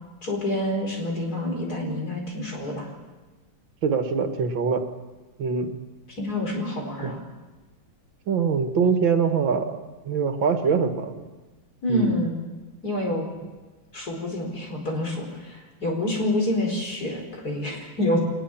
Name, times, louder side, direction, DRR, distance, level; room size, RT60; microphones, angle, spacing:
voice 1, 0.2-2.9 6.2-7.2 11.8-12.4 12.8-13.3 13.9-18.2, left 1 dB, 50° left, 1 dB, 5.0 m, -27 dB
voice 2, 3.8-4.8 5.4-5.8 7.0-7.1 8.3-11.3 11.9-12.2, right 5 dB, 80° right, 6 dB, 2.4 m, -24 dB
23.0 x 20.0 x 7.3 m, 1.3 s
omnidirectional pair, 2.1 m